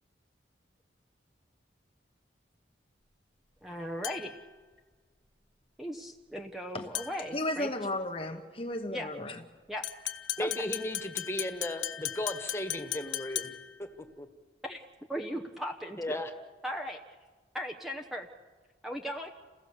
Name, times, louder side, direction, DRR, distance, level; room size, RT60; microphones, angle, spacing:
voice 1, 3.6-4.3 5.8-7.7 8.9-9.1 9.7-9.8 10.4-10.7 14.6-14.8 15.1-16.2 16.6-17.0 17.5-18.3 18.8-19.3, equal, ahead, 0.9 m, -37 dB
sound 1, 4.0-4.5 6.9-7.4 9.8-13.8, left 13 dB, 90° left, 1.4 m, -37 dB
voice 2, 7.3-9.4, left 1 dB, 30° left, 1.1 m, -34 dB
voice 3, 10.4-13.5 14.2-14.3 16.0-16.3, left 1 dB, 15° left, 1.6 m, -35 dB
29.0 x 16.5 x 7.1 m
head